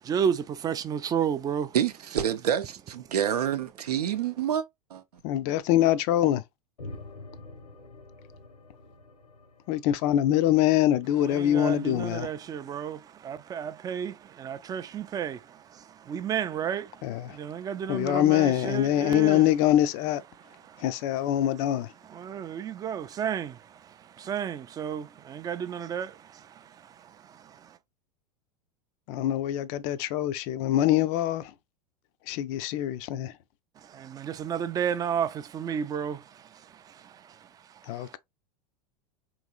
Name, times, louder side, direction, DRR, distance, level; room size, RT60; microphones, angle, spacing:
voice 1, 0.0-1.8 11.2-19.5 20.3-21.3 22.0-27.8 33.8-38.2, right 8 dB, 20° right, 0.3 m, -33 dB
voice 2, 1.7-2.6 3.1-4.6 4.9-5.0, right 9 dB, 80° right, 0.5 m, -27 dB
voice 3, 5.2-6.4 9.7-12.3 17.0-17.4 17.9-20.2 20.8-21.9 29.1-31.5 32.3-33.3 37.9-38.2, left 12 dB, 45° left, 0.4 m, -24 dB
sound 1, 6.8-11.5, left 2 dB, 85° left, 1.0 m, -47 dB
3.9 x 2.9 x 2.3 m
hypercardioid pair, 95°, 20 cm